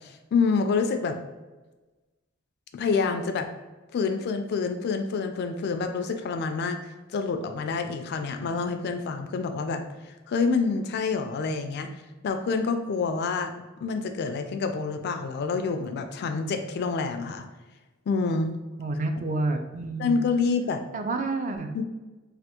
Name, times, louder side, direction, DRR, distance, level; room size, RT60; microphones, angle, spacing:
voice 1, 0.0-1.2 2.7-3.5 3.9-6.8 7.1-9.8 10.3-11.9 12.2-13.5 13.8-17.4 18.1-18.5 20.0-20.8 21.7-21.8, left 4 dB, 55° left, 7 dB, 0.3 m, -27 dB
voice 2, 18.8-20.2 20.9-21.7, right 2 dB, 40° right, 6 dB, 0.3 m, -29 dB
3.3 x 2.3 x 2.9 m, 1.2 s
head